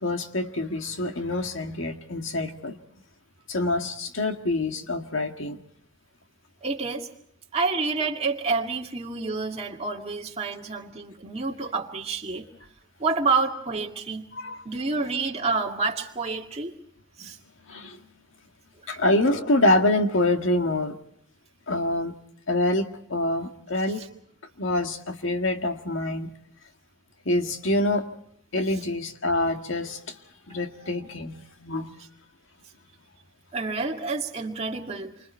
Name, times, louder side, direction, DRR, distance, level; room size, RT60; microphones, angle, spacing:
voice 1, 0.0-2.8 3.5-5.6 14.3-14.6 17.7-18.0 18.9-21.0 21.7-22.1 22.5-24.0 24.6-26.3 27.3-28.1 28.5-30.0 30.5-32.0, left 1 dB, 70° left, 6 dB, 1.9 m, -26 dB
voice 2, 6.6-7.1 7.5-12.5 13.0-14.3 14.6-16.8 17.2-17.4 18.9-19.0 33.5-35.1, right 4 dB, 30° right, 0 dB, 2.2 m, -28 dB
28.0 x 25.0 x 4.5 m, 0.66 s
head